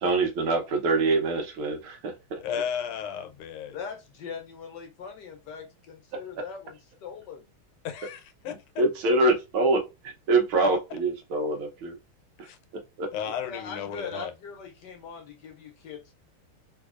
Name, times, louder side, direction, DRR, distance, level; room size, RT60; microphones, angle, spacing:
voice 1, 0.0-2.4 8.8-12.0 13.0-13.1, right 2 dB, 75° right, 1.7 m, -25 dB
voice 2, 2.4-3.8 7.8-8.8 12.4-12.6 13.1-14.3, left 8 dB, 80° left, 1.6 m, -34 dB
voice 3, 3.7-7.4 13.4-16.1, left 5 dB, 65° left, 1.1 m, -41 dB
3.9 x 2.7 x 2.4 m
omnidirectional pair, 2.4 m